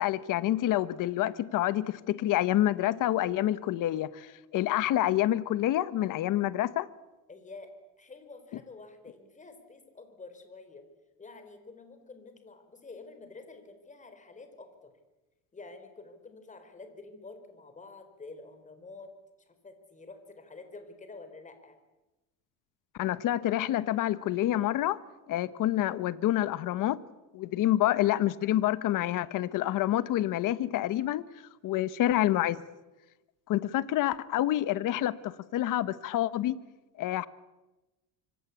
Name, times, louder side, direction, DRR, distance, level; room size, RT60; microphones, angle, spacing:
voice 1, 0.0-4.3 4.5-6.9 23.0-25.0 25.3-27.0 27.3-31.2 31.6-32.6 33.5-36.6 37.0-37.3, left 13 dB, 55° left, 16 dB, 1.2 m, -27 dB
voice 2, 7.3-10.9 11.2-14.9 15.5-19.1 19.4-21.8 27.7-28.0 31.6-31.9, left 3 dB, 20° left, 8 dB, 4.4 m, -49 dB
25.5 x 24.5 x 8.5 m, 1.1 s
cardioid pair, 145°, 37 cm